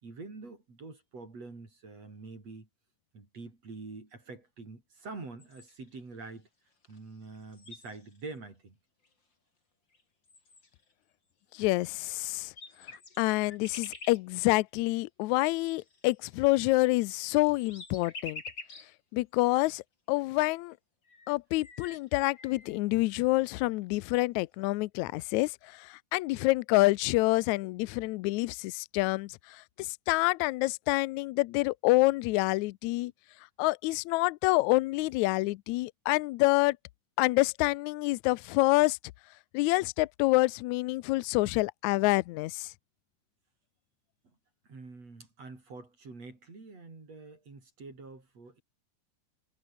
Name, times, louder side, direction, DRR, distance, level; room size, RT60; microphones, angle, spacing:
voice 1, 0.0-2.7 3.1-6.5 6.9-8.8 21.9-22.0 44.2-44.4 44.6-48.6, right 3 dB, 45° right, 7.0 m, -46 dB
sound 1, 5.4-6.0 6.8-7.0 7.2-8.3 9.0-9.1 9.9-10.0 10.3-10.9 12.0-12.1 12.4-14.2 15.4-18.9 19.5-19.6 20.7-20.8 21.0-22.8, left 3 dB, 30° left, 5.0 m, -48 dB
voice 2, 11.6-12.5 13.2-18.4 19.1-19.8 20.1-20.7 21.3-29.3 29.8-33.1 33.6-36.8 37.2-39.0 39.5-42.7, left 21 dB, 90° left, 1.6 m, -27 dB
omnidirectional pair, 4.0 m